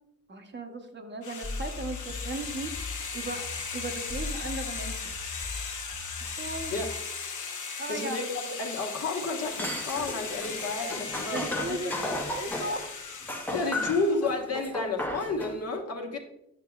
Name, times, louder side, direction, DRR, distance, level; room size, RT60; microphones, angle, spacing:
voice 1, 0.3-2.7 3.1-5.1 6.4-6.7 7.8-8.2 11.3-12.9 13.6-13.7, right 2 dB, 35° right, 4 dB, 0.9 m, -36 dB
sound 1, 1.2-14.3, left 5 dB, 75° left, 1.0 m, -37 dB
sound 2, 1.4-6.9, left 3 dB, 30° left, 1.1 m, -39 dB
voice 2, 7.9-11.4 11.7-11.8 13.5-16.2, left 3 dB, 55° left, 1 dB, 1.2 m, -31 dB
sound 3, 9.4-12.9 13.3-15.6, left 1 dB, 5° left, 0.7 m, -35 dB
9.4 x 5.7 x 2.3 m, 0.80 s
cardioid pair, 95°, 31 cm